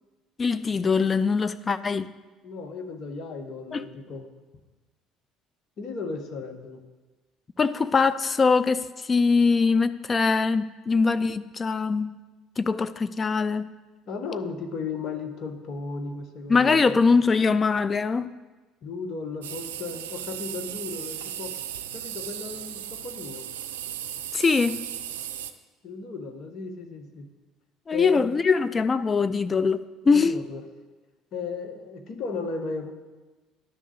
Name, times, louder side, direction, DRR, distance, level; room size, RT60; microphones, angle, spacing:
voice 1, 0.4-2.1 3.7-3.8 7.6-12.1 12.6-13.7 16.5-18.3 24.3-24.9 27.9-30.4, left 4 dB, 30° left, 14 dB, 0.4 m, -22 dB
voice 2, 2.4-4.3 5.8-6.8 14.1-17.0 18.8-21.5 21.9-23.5 25.8-27.3 27.9-28.4 30.0-30.6 31.3-32.9, left 4 dB, 55° left, 6 dB, 1.0 m, -35 dB
sound 1, 19.4-25.5, right 10 dB, 85° right, 0.4 m, -36 dB
10.5 x 3.7 x 7.0 m, 1.2 s
hypercardioid pair, 65°, 0 cm